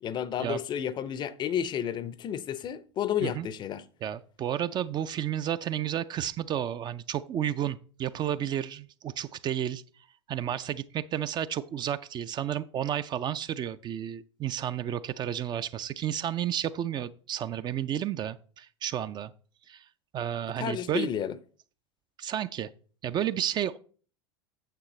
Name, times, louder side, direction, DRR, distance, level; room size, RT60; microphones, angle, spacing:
voice 1, 0.0-3.9 20.6-21.4, left 9 dB, 30° left, 0.5 m, -31 dB
voice 2, 4.0-9.8 10.3-19.3 19.7-19.9 20.1-21.1 22.2-22.7 23.0-23.8, right 10 dB, 30° right, 0.4 m, -32 dB
9.0 x 7.2 x 3.2 m
figure-of-eight pair, 85°, 15 cm